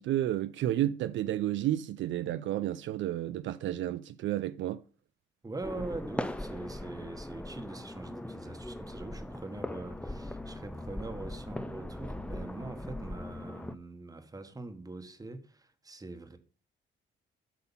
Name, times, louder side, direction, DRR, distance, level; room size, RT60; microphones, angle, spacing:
voice 1, 0.0-4.8, right 13 dB, 70° right, 0.4 m, -31 dB
voice 2, 5.4-16.4, right 2 dB, 20° right, 1.2 m, -43 dB
sound 1, 5.6-13.8, left 1 dB, 5° left, 0.5 m, -40 dB
8.3 x 5.6 x 5.5 m
cardioid pair, 90°, 20 cm